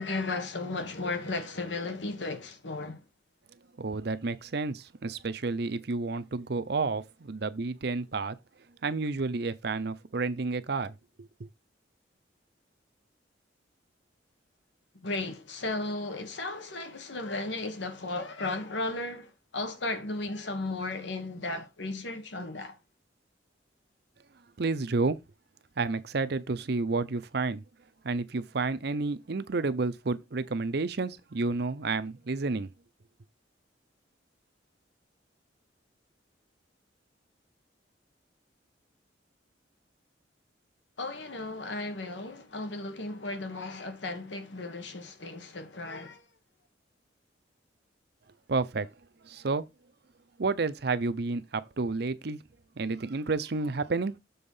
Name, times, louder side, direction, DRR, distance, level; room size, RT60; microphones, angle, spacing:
voice 1, 0.0-3.0 15.0-22.7 41.0-46.2, left 2 dB, 75° left, 1.3 m, -35 dB
voice 2, 3.8-8.4 8.8-10.9 11.4-11.5 24.6-25.2 25.8-27.6 28.0-32.7 48.5-48.9 49.2-49.7 50.4-52.4 52.8-54.1, right 3 dB, 60° right, 0.6 m, -30 dB
7.1 x 3.7 x 5.5 m
head